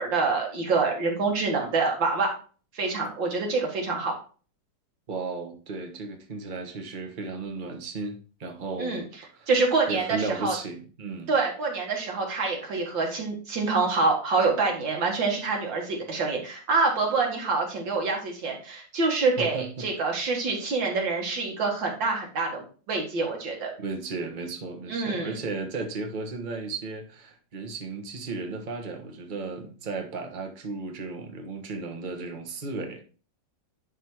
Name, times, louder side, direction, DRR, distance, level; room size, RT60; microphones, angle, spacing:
voice 1, 0.0-2.3 2.7-4.1 8.8-9.0 9.5-10.5 11.3-23.7 24.9-25.4, right 4 dB, 90° right, 2.5 m, -26 dB
voice 2, 5.1-9.0 9.3-9.5 9.9-11.3 19.4-19.8 23.8-33.0, right 3 dB, 30° right, 1.2 m, -35 dB
10.0 x 3.6 x 4.6 m
omnidirectional pair, 2.0 m